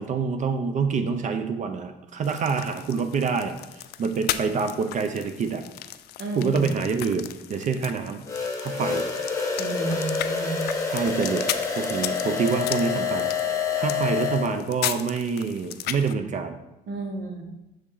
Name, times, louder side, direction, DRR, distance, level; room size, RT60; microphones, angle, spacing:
voice 1, 0.0-5.6 6.4-8.2 8.6-9.1 10.9-11.5 11.8-16.6, right 5 dB, 45° right, 8 dB, 0.5 m, -27 dB
sound 1, 2.2-16.1, left 12 dB, 70° left, 0.4 m, -36 dB
voice 2, 6.2-6.7 9.6-10.7 16.9-17.4, right 2 dB, 80° right, 2 dB, 1.3 m, -31 dB
sound 2, 8.3-14.5, left 5 dB, 20° left, 1.2 m, -27 dB
6.4 x 4.1 x 3.8 m, 0.95 s
cardioid pair, 110°, 17 cm